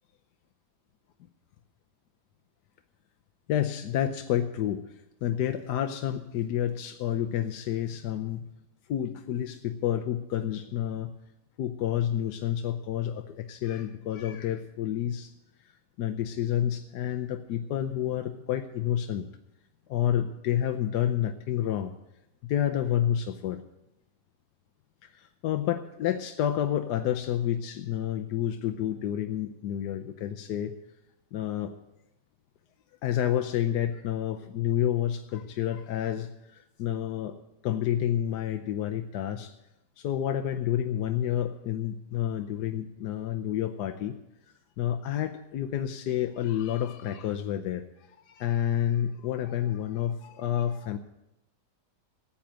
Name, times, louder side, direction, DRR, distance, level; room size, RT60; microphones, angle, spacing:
voice 1, 3.5-8.4 8.9-11.1 11.6-15.3 16.0-19.2 19.9-21.9 22.4-23.6 25.0-30.7 31.3-31.7 33.0-37.4 37.6-39.5 40.0-44.2 44.8-47.8 48.2-51.0, left 10 dB, 80° left, 7 dB, 1.3 m, -29 dB
14.5 x 8.6 x 7.4 m, 0.88 s
omnidirectional pair, 1.8 m